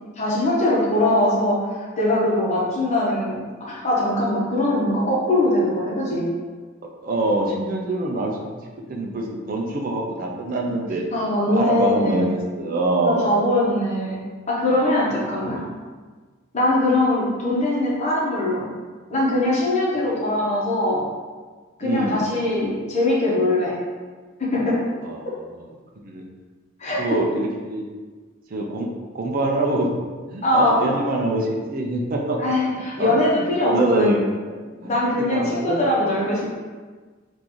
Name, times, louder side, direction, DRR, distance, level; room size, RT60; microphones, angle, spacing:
voice 1, 0.2-6.3 11.1-12.2 13.0-14.2 14.5-15.6 16.5-18.6 19.1-21.0 21.8-23.8 24.4-24.8 25.2-25.3 26.8-27.0 30.4-30.9 32.4-34.1 34.8-36.4, left 1 dB, 35° left, -5 dB, 0.9 m, -21 dB
voice 2, 6.8-8.5 8.9-11.0 11.5-13.3 15.4-15.7 21.8-22.3 25.0-25.4 26.0-26.2 27.0-27.9 28.5-28.9 29.1-29.9 30.3-32.5 33.0-33.2 33.4-34.2 34.8-34.9 35.2-35.8, right 2 dB, 45° right, 0 dB, 0.4 m, -24 dB
3.8 x 2.5 x 3.0 m, 1.4 s
head